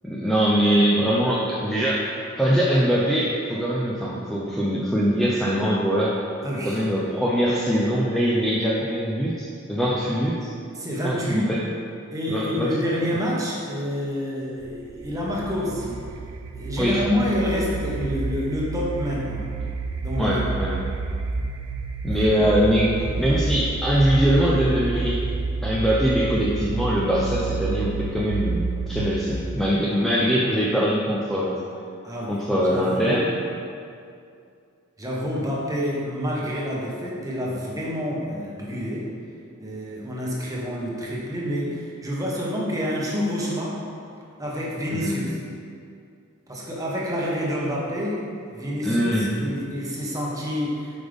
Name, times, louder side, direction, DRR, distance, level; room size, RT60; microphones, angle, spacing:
voice 1, 0.0-2.1 2.4-6.2 6.6-10.5 11.0-11.6 12.3-12.7 16.8-17.0 20.2-20.7 22.0-22.9 23.2-25.2 25.6-31.6 32.3-33.2 44.9-45.2 48.8-49.3, equal, ahead, -7 dB, 0.5 m, -22 dB
voice 2, 6.4-6.8 10.7-11.5 12.1-16.0 16.5-19.5 20.0-20.5 22.1-22.2 29.9-30.0 32.0-33.2 35.0-39.1 39.6-43.8 44.4-45.3 46.5-48.2 48.5-51.0, equal, 15° right, -4 dB, 1.1 m, -28 dB
sound 1, 14.6-29.5, right 3 dB, 85° right, 0.5 m, -29 dB
7.6 x 5.3 x 3.5 m, 2.4 s
head